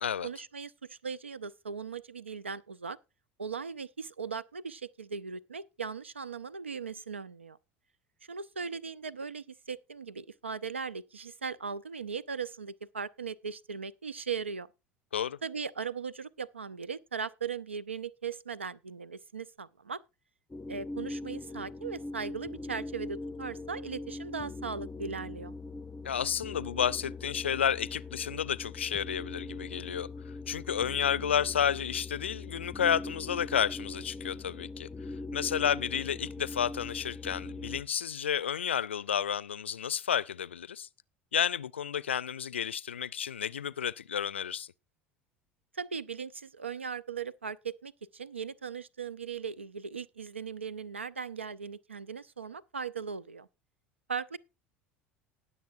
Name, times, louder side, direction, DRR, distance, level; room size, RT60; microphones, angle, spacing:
voice 1, 0.2-3.0 3.4-7.6 8.3-14.7 15.4-20.0 20.7-25.5 45.7-53.5 54.1-54.4, right 6 dB, 85° right, 0.6 m, -38 dB
sound 1, 20.5-37.8, left 3 dB, 15° left, 0.6 m, -41 dB
voice 2, 26.0-30.1 30.5-34.9 35.3-40.9 41.3-44.7, left 8 dB, 80° left, 0.4 m, -31 dB
19.5 x 7.0 x 2.6 m
figure-of-eight pair, 70°, 6 cm